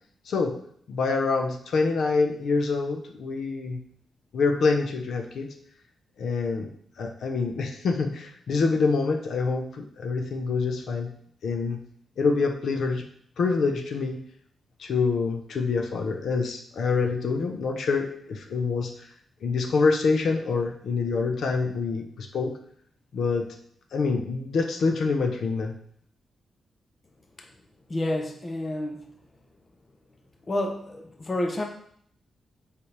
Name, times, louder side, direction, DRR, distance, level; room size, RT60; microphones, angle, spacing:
voice 1, 0.3-0.6 0.9-3.8 4.3-5.5 6.2-6.7 7.0-11.1 11.4-11.8 12.2-13.0 13.4-14.2 14.8-19.1 19.4-22.5 23.1-23.5 23.9-25.7, left 4 dB, 60° left, 4 dB, 0.7 m, -26 dB
voice 2, 27.9-29.1 30.5-31.6, left 1 dB, 25° left, 3 dB, 0.6 m, -29 dB
7.2 x 5.0 x 3.3 m, 0.65 s
wide cardioid pair, 175°, 0 cm